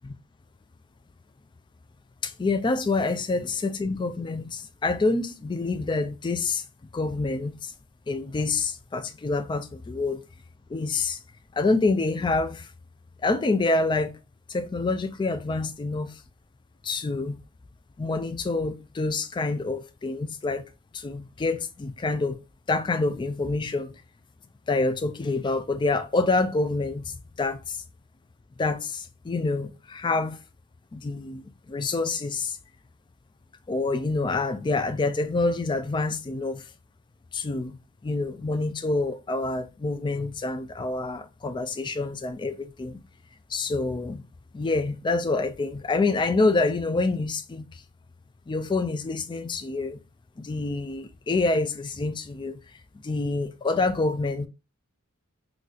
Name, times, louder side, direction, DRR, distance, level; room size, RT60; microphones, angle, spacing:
voice 1, 2.2-6.6 6.9-7.7 8.1-10.2 10.7-11.2 11.6-12.7 13.2-14.2 14.5-16.1 16.8-17.4 18.0-20.6 20.9-22.4 22.7-23.9 24.7-27.8 28.6-30.4 30.9-31.4 31.7-32.6 33.7-36.6 37.3-37.8 38.0-43.0 43.5-44.2 44.5-47.7 48.5-50.0 50.4-52.6 53.0-54.5, left 3 dB, 20° left, 0.3 m, -27 dB
3.9 x 2.4 x 2.4 m
head